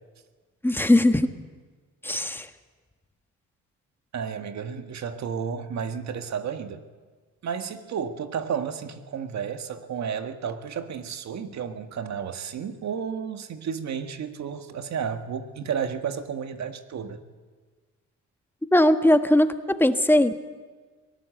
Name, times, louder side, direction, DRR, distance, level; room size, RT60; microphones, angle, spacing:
voice 1, 0.6-1.3 2.0-2.5 18.7-20.4, left 1 dB, 5° left, 8 dB, 1.4 m, -19 dB
voice 2, 4.1-6.8 7.4-17.2, right 7 dB, 65° right, 7 dB, 1.8 m, -32 dB
23.0 x 18.0 x 7.8 m, 1.4 s
cardioid pair, 90°, 30 cm